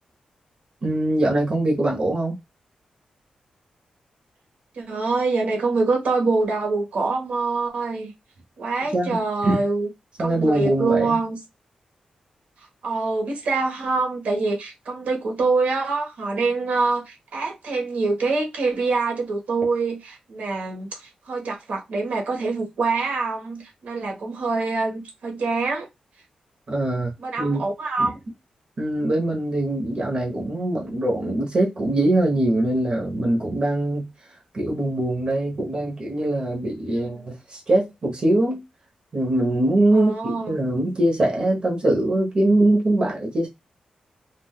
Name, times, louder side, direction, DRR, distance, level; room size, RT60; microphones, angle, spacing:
voice 1, 0.8-2.3 8.9-9.2 9.4-9.6 10.2-11.2 26.7-27.1 27.4-27.6 28.0-28.1 28.8-34.1 34.5-38.6 39.1-43.5, right 1 dB, 40° right, 1.0 m, -22 dB
voice 2, 4.7-8.1 8.6-9.9 10.2-11.4 12.8-25.9 27.2-28.1 37.0-37.3 39.9-40.5, right 3 dB, 80° right, 1.3 m, -25 dB
3.5 x 2.6 x 2.3 m
wide cardioid pair, 125°, 2 cm